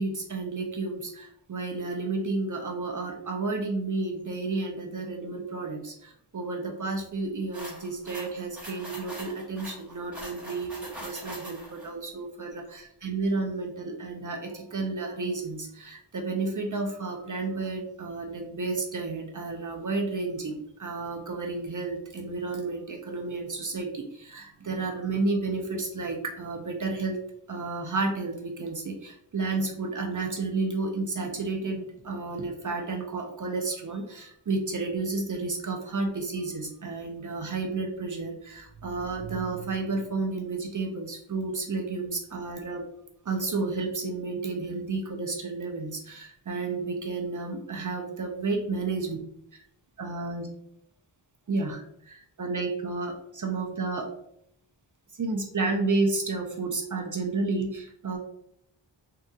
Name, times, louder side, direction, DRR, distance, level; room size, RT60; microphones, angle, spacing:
voice 1, 0.0-27.2 27.5-42.8 43.3-49.2 49.5-49.6 50.0-50.5 51.5-54.1 55.1-58.2, right 3 dB, 45° right, 2 dB, 0.5 m, -31 dB
sound 1, 7.5-11.9, equal, 5° right, 1.2 m, -42 dB
3.7 x 2.7 x 2.2 m, 0.73 s
wide cardioid pair, 80°, 45 cm